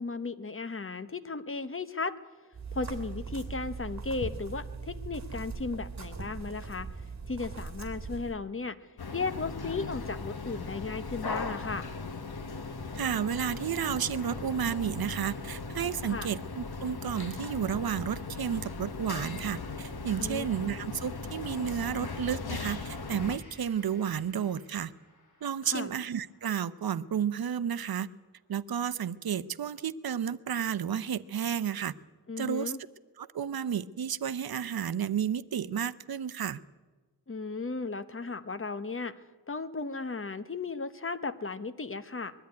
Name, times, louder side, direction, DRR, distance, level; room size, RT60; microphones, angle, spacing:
voice 1, 0.0-2.2 2.7-6.9 7.3-8.8 9.1-11.9 16.0-16.3 20.2-20.4 25.6-25.9 32.3-32.8 37.3-39.1 39.5-42.3, left 4 dB, 35° left, 12 dB, 0.9 m, -35 dB
sound 1, 2.5-8.4, right 4 dB, 45° right, 2.8 m, -40 dB
sound 2, 9.0-23.4, left 4 dB, 80° left, 1.4 m, -38 dB
voice 2, 12.9-24.9 25.4-28.1 28.5-31.9 32.4-32.7 33.2-36.6, right 8 dB, 70° right, 15 dB, 0.7 m, -32 dB
Gong, 23.1-30.7 31.1-31.2, left 1 dB, 50° left, 6.9 m, -63 dB
21.5 x 13.0 x 9.5 m, 1.3 s
wide cardioid pair, 120°, 37 cm